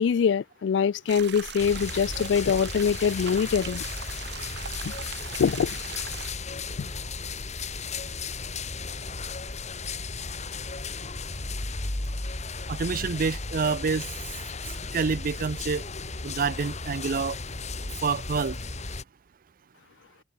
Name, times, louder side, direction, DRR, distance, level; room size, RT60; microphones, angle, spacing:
voice 1, 0.0-3.8 4.8-4.9 5.4-5.8, left 6 dB, 70° left, 0.3 m, -24 dB
sound 1, 1.1-6.3, right 8 dB, 65° right, 2.4 m, -40 dB
sound 2, 1.6-19.0, left 3 dB, 40° left, 2.2 m, -35 dB
voice 2, 12.7-14.1 14.9-15.8 16.2-17.4 18.0-18.6, right 5 dB, 50° right, 0.5 m, -27 dB
head